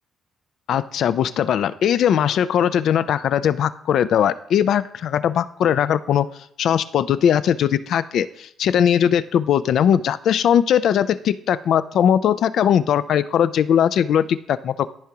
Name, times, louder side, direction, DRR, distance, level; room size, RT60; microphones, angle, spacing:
voice 1, 0.7-6.3 6.6-14.9, left 9 dB, 70° left, 14 dB, 0.4 m, -19 dB
14.0 x 4.8 x 2.8 m, 0.66 s
cardioid pair, 90°, 0 cm